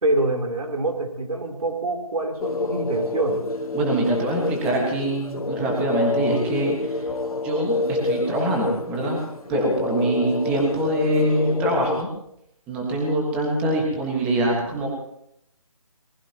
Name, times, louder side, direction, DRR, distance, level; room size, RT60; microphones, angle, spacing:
voice 1, 0.0-3.5, right 2 dB, 80° right, 3 dB, 3.6 m, -25 dB
sound 1, 2.4-12.0, left 3 dB, 90° left, 2.2 m, -28 dB
voice 2, 3.7-7.1 7.4-9.2 9.5-12.1 12.7-14.9, right 1 dB, 5° right, -1 dB, 1.5 m, -24 dB
23.5 x 19.5 x 2.9 m, 0.77 s
hypercardioid pair, 175°, 18 cm